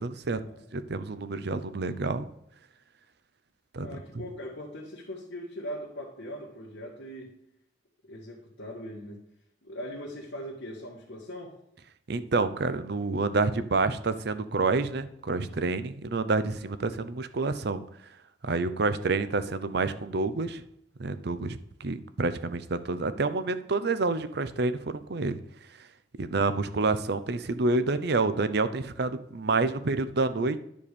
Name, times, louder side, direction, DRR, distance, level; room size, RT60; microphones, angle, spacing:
voice 1, 0.0-0.4 0.7-2.3 3.7-4.0 12.1-17.8 18.4-20.6 21.0-25.4 26.2-30.6, right 3 dB, 65° right, 12 dB, 0.7 m, -28 dB
voice 2, 3.8-7.3 8.0-9.2 9.6-11.6, equal, 90° left, -6 dB, 1.8 m, -40 dB
10.5 x 4.3 x 6.8 m, 0.77 s
head